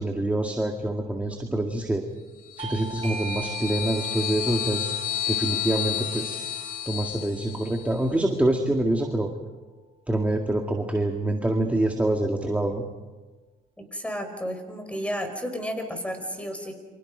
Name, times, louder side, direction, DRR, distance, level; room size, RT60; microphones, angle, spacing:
voice 1, 0.0-2.1 2.6-4.9 5.3-6.5 6.9-9.3 10.1-12.8, right 1 dB, 10° right, 2 dB, 2.0 m, -26 dB
Horror Stalker, 2.5-7.9, left 11 dB, 60° left, 3.2 m, -31 dB
Bell / Doorbell, 2.6-7.8, right 3 dB, 35° right, 1.5 m, -40 dB
voice 2, 13.8-16.7, equal, 5° left, 6 dB, 5.1 m, -32 dB
30.0 x 25.0 x 5.2 m, 1.2 s
cardioid pair, 110°, 17 cm